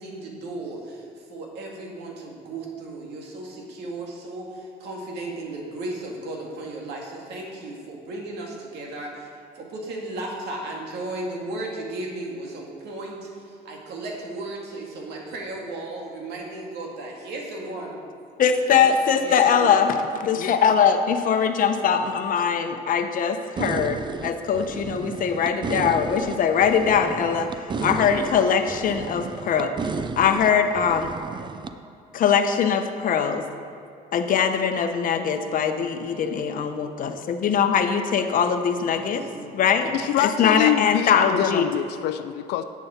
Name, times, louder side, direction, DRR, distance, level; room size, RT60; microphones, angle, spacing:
voice 1, 0.0-9.3 9.5-18.0 19.2-19.8 26.8-27.1 36.0-36.7 38.7-39.7, right 2 dB, 80° right, -1 dB, 2.2 m, -35 dB
voice 2, 18.4-29.7 30.2-31.1 32.1-33.4 34.1-39.2 39.5-39.9 40.2-41.7, left 7 dB, 55° left, 7 dB, 0.9 m, -22 dB
sound 1, 23.6-31.7, right 4 dB, 25° right, 0.5 m, -33 dB
voice 3, 39.9-42.6, left 11 dB, 80° left, 9 dB, 0.5 m, -25 dB
10.5 x 8.4 x 4.4 m, 2.5 s
cardioid pair, 110°, 17 cm